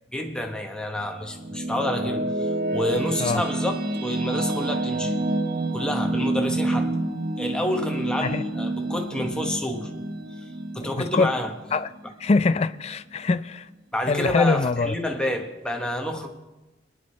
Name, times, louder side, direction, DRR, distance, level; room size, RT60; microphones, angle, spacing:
voice 1, 0.1-5.1 5.7-6.9 7.4-9.9 10.4-10.5 10.7-11.5 13.9-16.3, left 1 dB, 5° left, 1.2 m, -29 dB
sound 1, 1.0-12.3, right 2 dB, 50° right, 1.0 m, -28 dB
voice 2, 12.2-13.7 14.1-15.0, left 3 dB, 35° left, 0.4 m, -23 dB
23.5 x 10.0 x 3.2 m
head